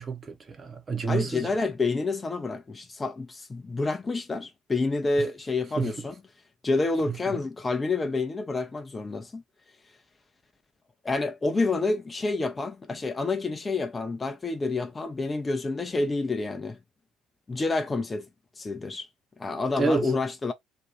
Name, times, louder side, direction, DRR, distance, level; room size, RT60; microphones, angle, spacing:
voice 1, 0.0-1.5 5.8-5.9 7.1-7.4 19.8-20.1, right 4 dB, 30° right, 0.7 m, -29 dB
voice 2, 1.1-6.1 6.6-9.4 11.0-16.8 17.5-18.3 18.6-19.1 19.4-20.5, left 3 dB, 20° left, 0.4 m, -28 dB
2.5 x 2.2 x 2.9 m
figure-of-eight pair, 55°, 0 cm